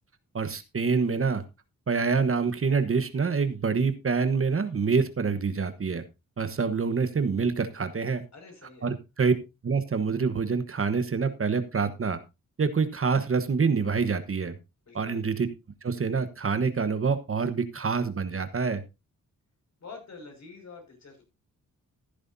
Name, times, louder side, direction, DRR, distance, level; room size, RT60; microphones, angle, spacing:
voice 1, 0.3-1.4 1.9-6.0 6.4-8.2 8.8-9.3 9.6-12.2 12.6-14.6 14.9-15.5 15.8-18.8, right 5 dB, 40° right, 11 dB, 1.2 m, -26 dB
voice 2, 8.3-8.9 14.9-15.3 19.8-21.2, left 4 dB, 55° left, 3 dB, 5.8 m, -46 dB
15.0 x 10.0 x 2.7 m, 0.25 s
cardioid pair, 75°, 32 cm